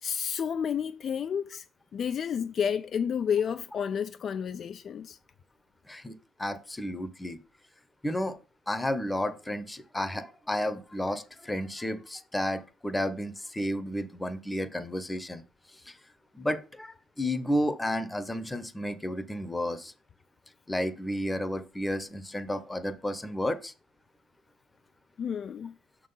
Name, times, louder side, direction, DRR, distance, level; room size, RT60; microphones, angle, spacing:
voice 1, 0.0-1.6 1.9-5.2 25.2-25.7, left 7 dB, 50° left, 0.4 m, -30 dB
voice 2, 5.8-7.4 8.0-8.4 8.7-15.4 15.7-16.0 16.3-19.9 20.7-23.7, left 1 dB, 15° left, 0.9 m, -32 dB
6.2 x 3.8 x 5.5 m
supercardioid pair, 70°, 0 cm